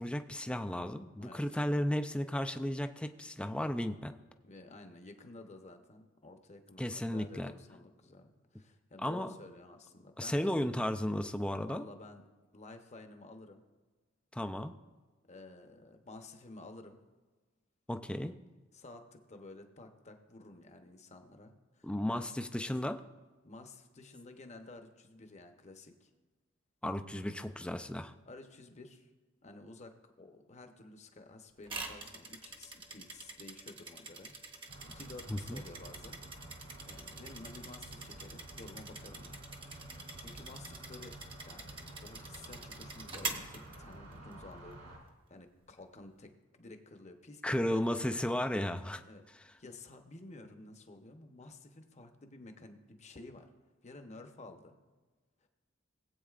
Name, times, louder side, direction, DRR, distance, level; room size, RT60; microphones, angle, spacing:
voice 1, 0.0-4.1 6.8-7.5 9.0-9.3 10.2-11.8 14.3-14.7 17.9-18.3 21.8-23.0 26.8-28.1 35.3-35.6 47.4-49.0, left 1 dB, 5° left, 8 dB, 0.4 m, -34 dB
voice 2, 4.4-10.5 11.6-12.3 12.5-13.6 15.2-17.0 18.7-22.4 23.4-26.1 28.3-29.1 29.4-34.3 34.9-36.2 36.6-39.4 40.2-41.2 41.5-41.7 42.0-48.3 49.1-49.2 49.6-53.5 53.8-54.8, left 2 dB, 35° left, 6 dB, 0.9 m, -52 dB
sound 1, 31.7-44.3, right 3 dB, 25° right, 1.0 m, -45 dB
sound 2, 34.7-45.0, right 1 dB, 70° right, 3.0 m, -51 dB
18.5 x 8.3 x 2.4 m, 1.3 s
head